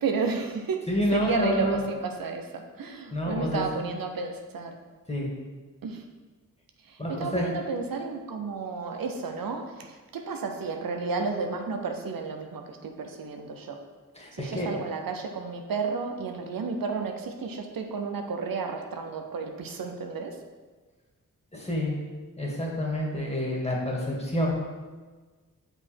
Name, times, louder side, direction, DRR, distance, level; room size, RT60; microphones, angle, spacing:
voice 1, 0.0-0.8 1.1-4.8 5.8-6.0 6.9-13.8 14.4-20.4, right 4 dB, 80° right, 4 dB, 0.7 m, -32 dB
voice 2, 0.9-1.8 3.1-3.8 5.1-5.3 7.0-7.5 14.2-14.7 21.5-22.0 22.4-24.5, left 1 dB, 20° left, -3 dB, 2.1 m, -28 dB
6.3 x 4.9 x 4.5 m, 1.4 s
cardioid pair, 55°, 34 cm